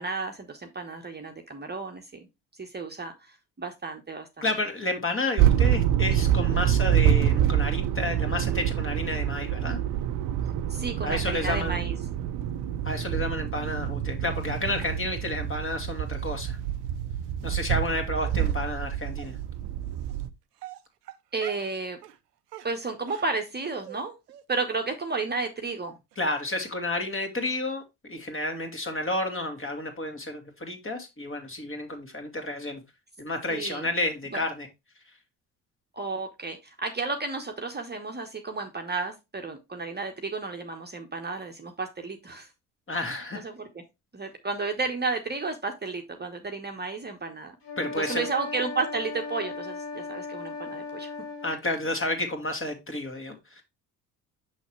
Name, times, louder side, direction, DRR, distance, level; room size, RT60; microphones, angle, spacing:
voice 1, 0.0-2.3 2.6-4.4 6.7-6.8 10.7-12.0 21.3-22.0 22.6-24.1 24.5-26.0 33.5-33.9 34.3-34.4 35.9-42.5 43.4-43.7 44.1-47.5 48.0-51.1, right 4 dB, 20° right, 1.2 m, -32 dB
voice 2, 4.4-9.8 11.0-11.8 12.8-16.6 17.4-19.4 26.2-32.8 33.2-34.7 42.9-43.5 47.8-48.3 51.4-53.6, left 2 dB, 25° left, 2.3 m, -31 dB
sound 1, 5.4-20.3, right 10 dB, 55° right, 0.7 m, -26 dB
Dog, 18.2-18.6 19.2-19.3 20.1-20.2 20.6-21.7 22.0-22.2 22.5-24.0 24.3-24.4 24.7-24.8 25.1-25.3 25.6-25.7 26.1-26.2 26.4-26.5, right 13 dB, 90° right, 0.7 m, -45 dB
sound 2, 47.6-51.6, left 4 dB, 90° left, 2.1 m, -37 dB
6.3 x 6.2 x 3.2 m
hypercardioid pair, 55°, 46 cm